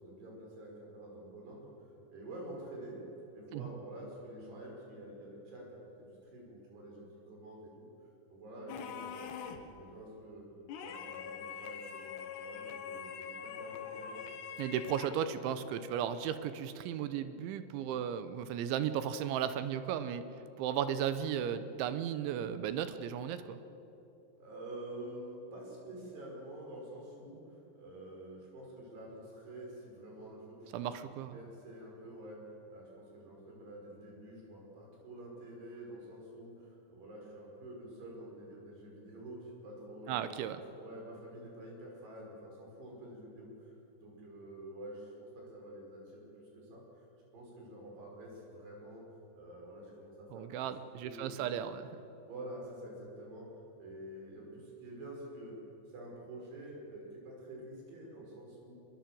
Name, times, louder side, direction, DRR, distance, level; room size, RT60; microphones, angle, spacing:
voice 1, 0.0-1.7 2.1-3.0 3.3-5.8 6.3-7.9 8.3-10.4 10.8-12.1 12.4-14.3 24.4-32.4 32.7-40.2 40.7-47.1 47.3-49.0 49.4-50.6 51.0-51.6 52.3-53.5 53.8-55.6 55.9-58.7, right 1 dB, 60° right, -2 dB, 7.5 m, -48 dB
sound 1, 8.7-9.8 10.7-15.3, left 7 dB, 70° left, 3.3 m, -44 dB
voice 2, 14.6-20.2 20.6-23.6 30.7-31.4 40.1-40.6 50.3-51.8, right 9 dB, 80° right, 11 dB, 3.3 m, -35 dB
24.5 x 21.0 x 7.7 m, 3.0 s
omnidirectional pair, 5.4 m